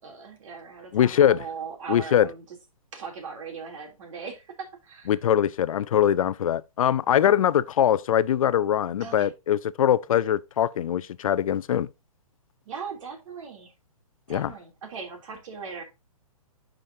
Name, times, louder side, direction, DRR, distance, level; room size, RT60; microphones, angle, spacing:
voice 1, 0.0-2.4 2.9-5.2 9.0-9.3 12.7-13.7 14.3-15.8, right 5 dB, 60° right, 3.0 m, -39 dB
voice 2, 0.9-1.4 1.9-2.3 5.1-11.9 14.3-14.5, left 10 dB, 65° left, 0.5 m, -22 dB
10.5 x 5.2 x 2.7 m
hypercardioid pair, 140°, 19 cm